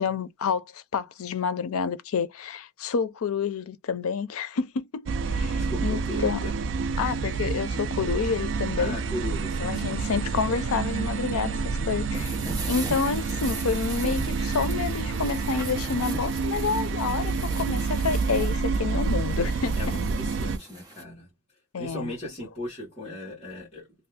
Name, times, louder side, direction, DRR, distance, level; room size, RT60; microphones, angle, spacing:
voice 1, 0.0-6.4 7.0-9.0 9.6-12.4 12.7-20.0 21.7-22.1, left 5 dB, 85° left, 0.5 m, -29 dB
sound 1, 5.1-20.6, right 4 dB, 60° right, 0.3 m, -28 dB
voice 2, 5.5-6.5 8.8-10.2 19.8-21.3 21.8-23.9, left 1 dB, 30° left, 1.3 m, -37 dB
sound 2, 12.1-21.0, right 2 dB, 15° right, 0.6 m, -40 dB
2.6 x 2.3 x 3.3 m
head